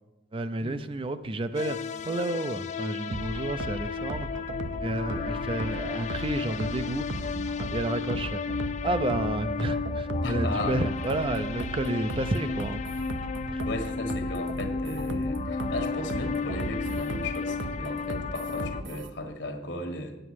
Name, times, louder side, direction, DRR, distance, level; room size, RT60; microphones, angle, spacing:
voice 1, 0.3-1.8 2.0-4.3 4.8-7.1 7.6-8.4 8.8-12.8 13.5-13.6, right 2 dB, 30° right, 11 dB, 0.4 m, -31 dB
sound 1, 1.5-18.8, left 5 dB, 40° left, 0.3 m, -33 dB
sound 2, 3.1-19.1, right 1 dB, 70° right, 0.8 m, -36 dB
voice 2, 10.2-10.8 13.6-20.2, left 1 dB, 70° left, 5 dB, 1.4 m, -35 dB
8.1 x 7.8 x 6.3 m, 1.1 s
head